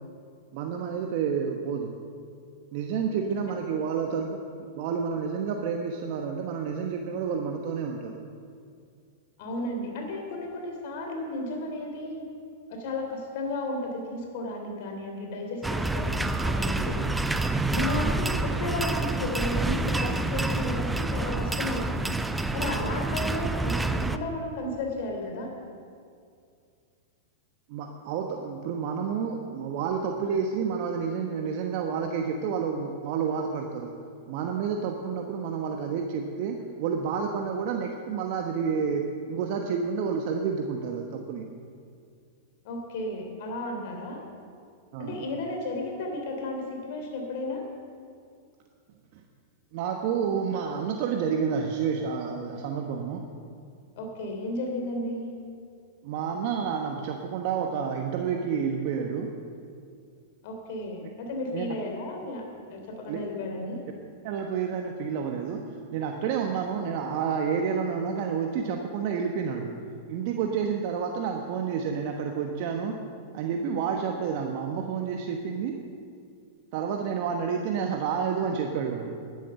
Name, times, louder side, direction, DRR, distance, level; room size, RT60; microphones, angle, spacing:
voice 1, 0.5-1.9 2.7-4.4 4.7-8.2 27.7-33.9 34.3-41.4 44.9-45.1 49.1-49.2 49.7-53.2 56.0-59.3 61.0-61.1 61.5-61.7 63.1-63.2 64.2-65.6 65.9-69.7 70.1-73.0 73.3-75.8 76.7-79.2, right 6 dB, 55° right, 3 dB, 1.1 m, -29 dB
voice 2, 9.4-12.2 12.7-17.0 17.5-22.1 22.5-25.5 42.6-44.2 45.0-47.6 54.0-55.3 60.4-62.4 62.7-63.8, left 2 dB, 60° left, 2 dB, 3.2 m, -33 dB
sound 1, 15.6-24.2, right 2 dB, 5° right, 0.6 m, -28 dB
11.5 x 10.5 x 6.9 m, 2.3 s
hypercardioid pair, 115°, 0 cm